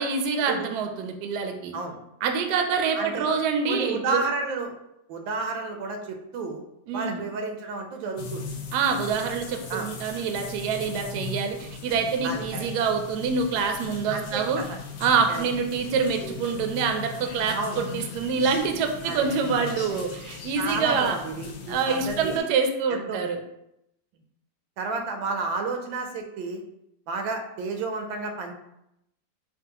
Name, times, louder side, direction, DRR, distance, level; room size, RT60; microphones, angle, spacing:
voice 1, 0.0-1.7 2.2-4.2 6.9-7.2 8.7-14.6 15.0-21.2 21.7-23.4, right 5 dB, 75° right, 5 dB, 1.0 m, -26 dB
voice 2, 2.9-3.3 3.7-4.7 5.1-6.6 6.9-8.4 9.7-9.9 12.2-12.6 14.1-14.6 15.3-15.4 17.5-17.8 19.0-19.6 20.5-22.4 22.9-23.2 24.8-26.6 27.1-28.5, right 3 dB, 90° right, 4 dB, 1.4 m, -31 dB
sound 1, 8.2-22.4, left 4 dB, 70° left, 1.0 m, -38 dB
5.2 x 2.4 x 2.8 m, 0.81 s
omnidirectional pair, 2.1 m